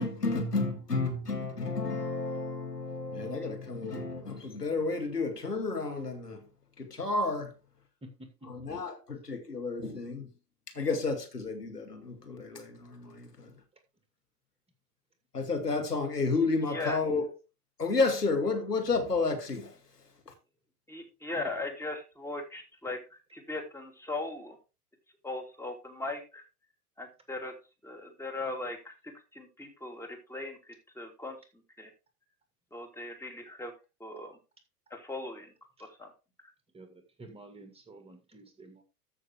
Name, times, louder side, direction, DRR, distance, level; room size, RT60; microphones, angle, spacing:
voice 1, 0.0-6.5 6.8-7.5 8.5-10.3 10.7-13.6 15.3-17.3 17.8-19.8 20.3-20.4, left 3 dB, 90° left, 2.3 m, -31 dB
voice 2, 8.0-8.5 28.5-28.6 35.8-35.9 36.7-38.8, right 1 dB, 10° right, 2.2 m, -50 dB
voice 3, 20.9-23.0 23.3-24.6 25.2-26.4 27.0-27.6 27.8-30.6 31.0-31.4 31.8-31.9 32.7-33.7 34.0-34.4 34.9-35.5 35.8-36.1, left 2 dB, 5° left, 2.7 m, -38 dB
13.5 x 6.3 x 3.6 m
figure-of-eight pair, 95°, 46 cm